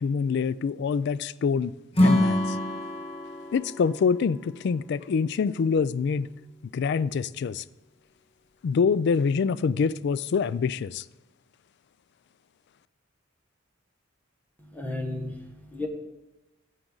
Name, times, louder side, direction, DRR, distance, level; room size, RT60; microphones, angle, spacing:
voice 1, 0.0-1.7 2.0-2.6 3.5-6.3 6.7-7.6 8.6-11.0, left 5 dB, 55° left, 19 dB, 0.3 m, -25 dB
Acoustic guitar / Strum, 1.9-5.2, left 1 dB, 30° left, 1.3 m, -26 dB
voice 2, 14.6-15.9, left 2 dB, 10° left, 3 dB, 1.2 m, -34 dB
13.0 x 7.6 x 3.9 m, 0.99 s
head